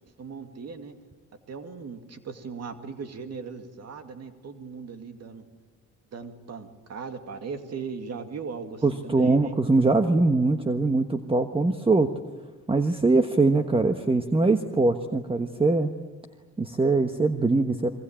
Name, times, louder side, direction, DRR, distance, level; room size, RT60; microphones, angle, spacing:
voice 1, 0.2-0.9 1.5-5.5 6.1-9.5, right 5 dB, 55° right, 7 dB, 2.3 m, -38 dB
voice 2, 8.8-12.1 12.7-15.9 16.6-17.9, right 3 dB, 20° right, 7 dB, 1.3 m, -22 dB
25.5 x 23.5 x 8.9 m, 1.3 s
cardioid pair, 90°, 30 cm